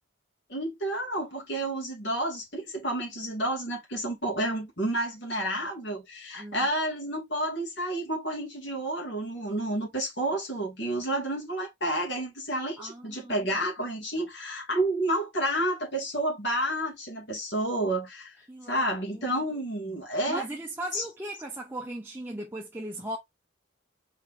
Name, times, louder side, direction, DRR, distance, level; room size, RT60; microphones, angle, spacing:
voice 1, 0.5-18.3 18.7-20.4 20.9-21.0, right 1 dB, 55° left, 2.7 m, -30 dB
voice 2, 6.4-6.7 12.8-13.5 18.5-18.8 19.1-19.4 19.9-20.0 20.3-23.2, right 1 dB, 10° right, 0.7 m, -38 dB
4.4 x 4.3 x 2.6 m
head